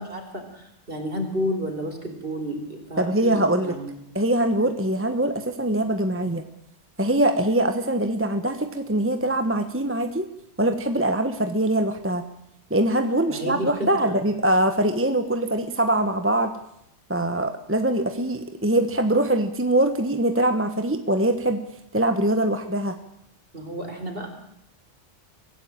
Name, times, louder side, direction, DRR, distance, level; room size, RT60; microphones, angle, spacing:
voice 1, 0.0-3.9 13.3-14.2 23.5-24.3, equal, 50° right, 5 dB, 4.3 m, -31 dB
voice 2, 3.0-3.8 4.1-6.4 7.0-10.3 10.6-12.2 12.7-16.6 17.1-21.6 21.9-23.0, right 1 dB, 10° right, 7 dB, 1.2 m, -23 dB
24.0 x 16.0 x 8.9 m, 0.78 s
omnidirectional pair, 1.2 m